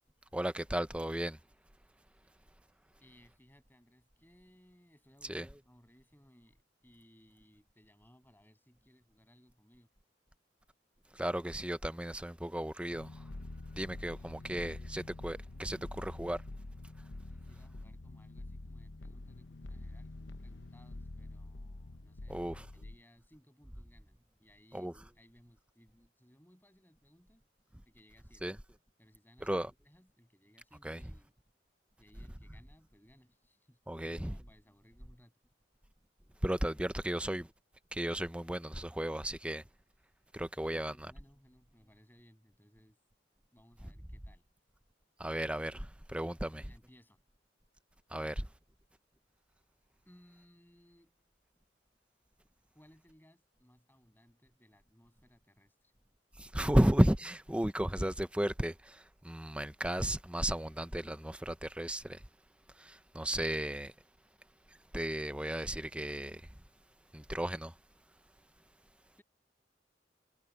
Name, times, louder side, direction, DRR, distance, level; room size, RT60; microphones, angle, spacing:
voice 1, 0.3-1.4 5.3-5.5 11.1-13.1 13.7-16.4 22.3-22.7 24.7-24.9 28.4-28.6 29.4-29.7 30.8-31.0 33.9-34.4 36.4-37.5 37.9-39.6 40.3-40.9 45.2-45.8 46.1-46.6 48.1-48.5 56.4-62.2 62.8-63.9 64.9-66.4 67.1-67.7, right 1 dB, 5° right, 0.7 m, -34 dB
voice 2, 3.0-9.9 14.0-14.6 17.3-27.4 27.8-28.6 29.0-31.3 32.0-35.3 36.4-36.6 37.1-37.2 40.6-43.0 43.5-44.4 46.5-47.2 50.0-51.1 52.7-55.9 69.2-69.3, equal, 10° left, 7.5 m, -64 dB
sound 1, 12.9-23.0, left 2 dB, 70° left, 0.9 m, -46 dB
head